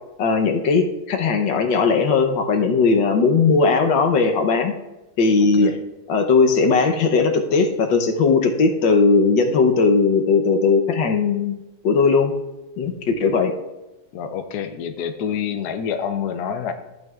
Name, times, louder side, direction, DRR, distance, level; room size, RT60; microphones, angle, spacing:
voice 1, 0.2-4.7 5.2-5.7 6.1-12.3 12.8-13.5, left 4 dB, 80° left, 4 dB, 1.6 m, -18 dB
voice 2, 14.1-16.7, left 7 dB, 65° left, 7 dB, 1.2 m, -27 dB
14.0 x 9.2 x 2.4 m, 1.0 s
omnidirectional pair, 2.0 m